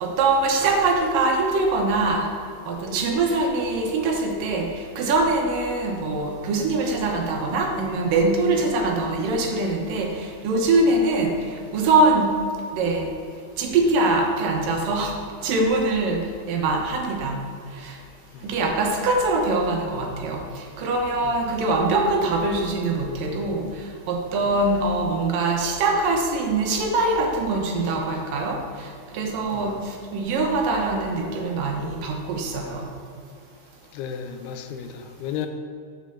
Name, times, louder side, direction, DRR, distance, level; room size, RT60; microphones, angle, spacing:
voice 1, 0.0-2.3 2.7-12.3 12.7-13.1 13.6-15.2 15.4-17.4 17.7-18.0 18.4-32.9, right 2 dB, 70° right, 1 dB, 2.6 m, -23 dB
voice 2, 33.9-35.5, left 8 dB, 90° left, 7 dB, 2.7 m, -34 dB
7.7 x 6.0 x 6.7 m, 2.4 s
omnidirectional pair, 4.5 m